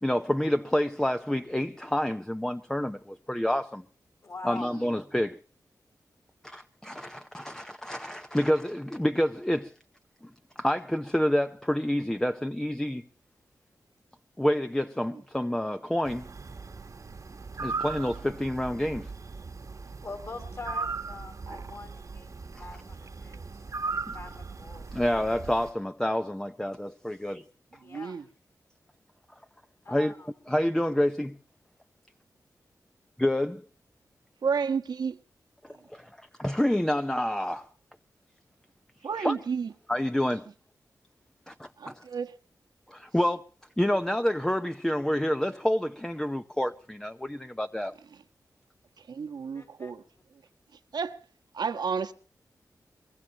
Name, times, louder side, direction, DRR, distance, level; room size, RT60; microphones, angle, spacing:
voice 1, 0.0-3.8 4.4-5.4 6.4-9.7 10.2-10.3 10.6-13.1 14.4-16.3 17.6-19.1 22.5-22.7 24.1-24.2 24.9-27.5 29.9-30.1 30.5-31.4 33.2-33.6 35.6-37.7 39.2-39.4 39.9-40.5 41.5-42.1 42.9-43.4 43.8-48.0, left 1 dB, 10° left, 0.7 m, -28 dB
voice 2, 4.2-4.7 20.0-23.4 23.9-24.9 27.1-27.2 27.8-28.2 29.8-30.3 49.5-49.9, left 3 dB, 45° left, 5.5 m, -43 dB
sound 1, 16.0-25.7, right 4 dB, 50° right, 1.3 m, -38 dB
voice 3, 27.8-28.2 34.4-35.2 39.0-39.7 41.8-42.3 49.1-50.0 50.9-51.2 51.5-52.1, right 6 dB, 80° right, 1.3 m, -31 dB
23.0 x 21.5 x 2.9 m
wide cardioid pair, 85°, 7 cm